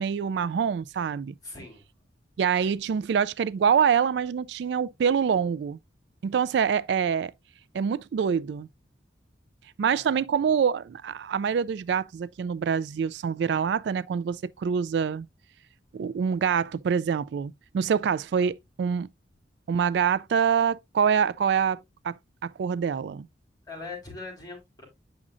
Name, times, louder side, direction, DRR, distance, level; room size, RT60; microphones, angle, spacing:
voice 1, 0.0-1.3 2.4-5.8 6.2-7.3 7.7-8.7 9.8-15.3 15.9-19.1 19.7-23.3, right 7 dB, 65° right, 0.3 m, -25 dB
voice 2, 1.4-1.8 9.9-10.2 23.7-24.8, left 3 dB, 20° left, 4.4 m, -41 dB
8.5 x 6.1 x 2.5 m
head